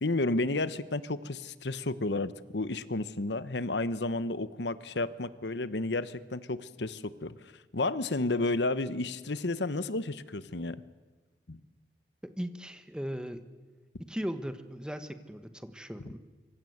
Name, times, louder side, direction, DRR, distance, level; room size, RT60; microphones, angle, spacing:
voice 1, 0.0-7.4 7.7-10.8 11.5-11.6, left 2 dB, 80° left, 15 dB, 1.0 m, -31 dB
voice 2, 12.2-13.4 14.0-16.2, equal, 5° right, 9 dB, 1.3 m, -38 dB
25.0 x 25.0 x 8.0 m, 1.3 s
head